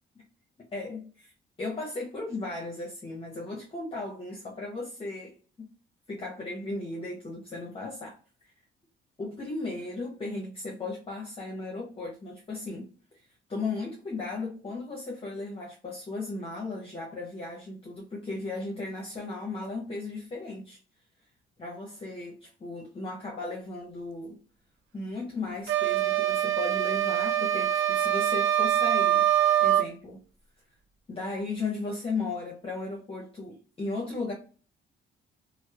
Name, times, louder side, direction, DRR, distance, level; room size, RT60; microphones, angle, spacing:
voice 1, 0.6-1.3 1.6-5.4 6.1-8.5 9.2-12.9 13.5-20.8 21.6-24.4 24.9-29.3 29.6-30.2 31.1-34.3, left 3 dB, 30° left, 0.7 m, -36 dB
sound 1, 25.7-29.9, right 11 dB, 80° right, 0.4 m, -24 dB
2.9 x 2.0 x 2.3 m
cardioid pair, 90°, 20 cm